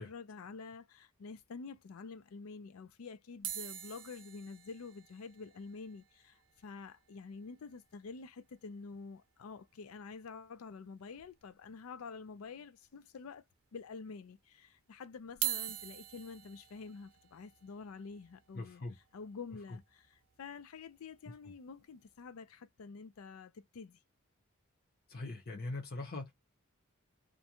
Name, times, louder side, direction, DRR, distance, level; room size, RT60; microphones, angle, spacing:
voice 1, 0.0-13.4 13.7-18.8 19.1-24.0, left 4 dB, 75° left, 0.4 m, -48 dB
sound 1, 3.4-7.8 8.1-8.2 8.3-8.5 8.9-9.0 10.4-10.5 11.2-11.7 12.2-12.3 13.2-13.3 15.2-21.3 21.9-22.1, right 11 dB, 60° right, 0.5 m, -45 dB
voice 2, 18.5-19.0 19.7-19.8 25.1-26.3, left 2 dB, 45° left, 0.7 m, -41 dB
2.5 x 2.1 x 2.8 m
head